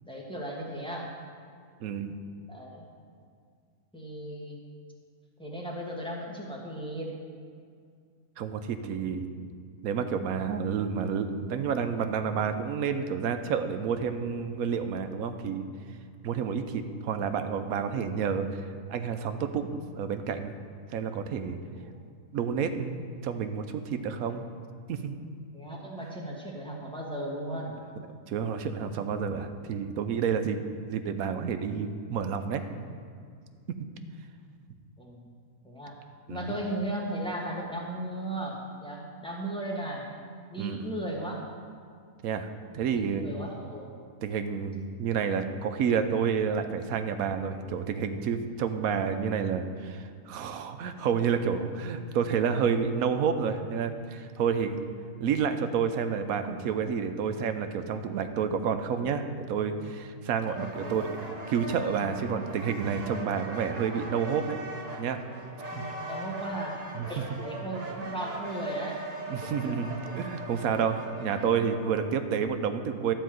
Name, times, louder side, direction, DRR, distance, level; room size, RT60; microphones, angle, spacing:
voice 1, 0.0-1.2 2.5-2.8 3.9-4.6 5.4-7.1 21.8-21.9 25.5-27.8 35.0-35.3 35.6-36.0 36.3-40.0 40.5-41.4 42.9-43.9 45.9-46.0 60.7-61.1 65.7-66.8 67.1-69.0, right 1 dB, 5° left, -3 dB, 1.6 m, -36 dB
voice 2, 1.8-2.1 8.4-9.3 9.8-15.6 16.2-20.5 20.9-21.6 22.3-24.4 24.9-25.2 28.3-30.6 30.9-32.6 36.3-36.6 40.6-40.9 42.2-43.3 44.2-54.8 55.2-64.6 65.0-65.2 65.7-65.9 66.9-67.1 69.3-73.1, right 6 dB, 80° right, 8 dB, 1.1 m, -29 dB
sound 1, 60.4-72.2, right 2 dB, 35° right, 0.9 m, -40 dB
12.5 x 4.6 x 7.7 m, 2.2 s
omnidirectional pair, 1.5 m